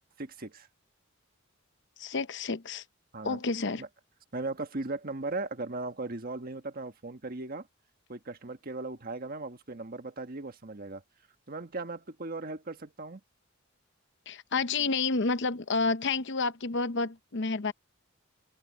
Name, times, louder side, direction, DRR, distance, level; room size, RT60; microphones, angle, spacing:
voice 1, 0.2-0.7 3.1-3.4 3.8-3.9 4.3-7.7 8.1-11.0 11.5-13.2, right 2 dB, 45° right, 1.4 m, -37 dB
voice 2, 2.0-2.8 3.2-3.8 14.3-17.7, left 4 dB, 60° left, 0.8 m, -30 dB
open air
head